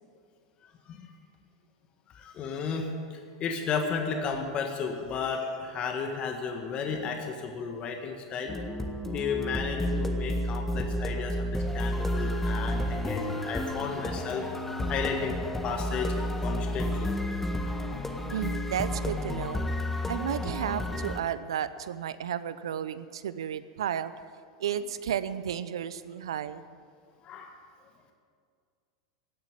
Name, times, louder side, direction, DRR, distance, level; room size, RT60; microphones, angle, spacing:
voice 1, 2.1-8.6 9.1-14.5 14.9-16.1 16.4-17.1 27.2-27.5, left 5 dB, 40° left, 3 dB, 1.7 m, -33 dB
sound 1, 8.5-21.2, equal, 10° left, 1.6 m, -31 dB
voice 2, 18.3-19.6 20.1-24.1 24.6-26.6, right 9 dB, 75° right, 15 dB, 0.7 m, -33 dB
17.0 x 9.0 x 8.9 m, 2.2 s
hypercardioid pair, 95°, 3 cm